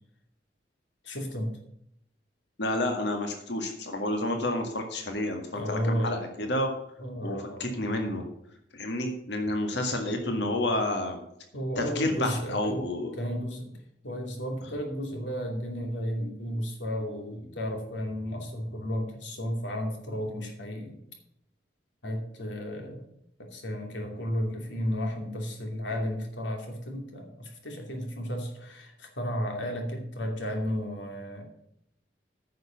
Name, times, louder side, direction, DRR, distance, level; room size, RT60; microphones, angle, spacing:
voice 1, 1.0-1.5 5.5-6.3 7.0-7.6 11.5-12.8 13.2-13.8 14.0-21.0 22.0-23.0 23.4-31.4, equal, 90° left, 2 dB, 2.7 m, -33 dB
voice 2, 2.6-6.7 7.2-8.2 8.7-11.2 11.8-13.1, left 1 dB, 75° left, 4 dB, 1.9 m, -30 dB
9.7 x 6.7 x 7.1 m, 0.75 s
head